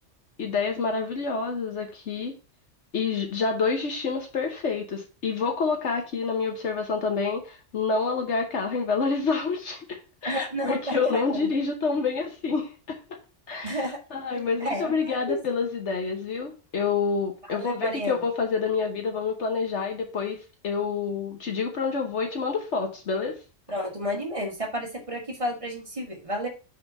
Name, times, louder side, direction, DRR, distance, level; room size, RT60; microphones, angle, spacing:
voice 1, 0.4-2.3 2.9-13.0 13.5-23.4, left 4 dB, 70° left, 3 dB, 1.3 m, -28 dB
voice 2, 10.2-11.5 13.6-14.0 14.6-15.4 17.5-18.2 23.7-26.5, equal, 30° right, 1 dB, 1.4 m, -31 dB
5.5 x 3.8 x 5.8 m, 0.35 s
omnidirectional pair, 1.3 m